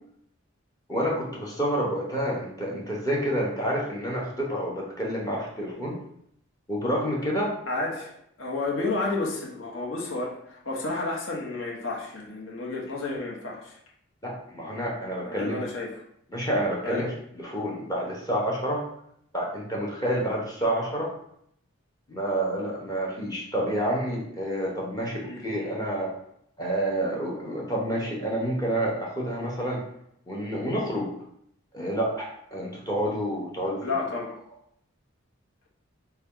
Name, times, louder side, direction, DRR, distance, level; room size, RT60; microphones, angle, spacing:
voice 1, 0.9-6.0 6.7-7.5 14.2-15.6 16.3-17.1 17.3-18.8 19.3-21.1 22.1-26.1 26.6-29.8 30.3-31.1 31.7-33.8, equal, 15° left, -4 dB, 0.8 m, -28 dB
voice 2, 7.7-8.1 8.4-13.8 15.2-16.0 16.8-17.1 25.2-25.4 33.8-34.3, left 3 dB, 65° left, -3 dB, 1.0 m, -31 dB
5.5 x 2.3 x 3.7 m, 0.72 s
head